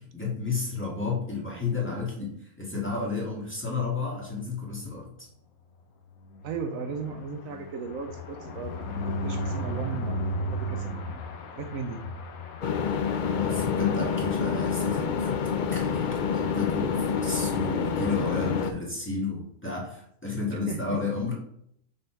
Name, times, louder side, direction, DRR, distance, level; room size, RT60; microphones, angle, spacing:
voice 1, 0.1-5.1 13.1-21.3, left 3 dB, 10° left, -5 dB, 1.7 m, -32 dB
sound 1, 6.1-14.9 15.3-15.5 15.7-15.8 16.1-16.4, equal, 85° left, 1.2 m, -35 dB
voice 2, 6.4-10.2 10.5-11.0 11.5-12.0 20.5-21.0, right 5 dB, 75° right, 7 dB, 1.1 m, -36 dB
sound 2, 12.6-18.7, left 6 dB, 70° left, 0.4 m, -27 dB
6.4 x 4.2 x 4.5 m, 0.70 s
omnidirectional pair, 1.5 m